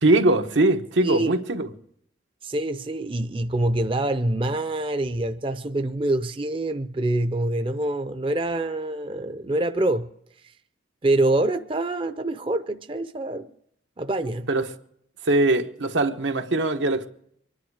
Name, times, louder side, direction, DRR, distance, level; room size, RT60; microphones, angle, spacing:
voice 1, 0.0-1.7 14.5-14.7 15.2-17.1, right 2 dB, 85° right, 1.2 m, -21 dB
voice 2, 2.4-10.1 11.0-13.5 14.0-14.5, right 1 dB, 30° right, 0.5 m, -25 dB
24.5 x 10.5 x 4.8 m
head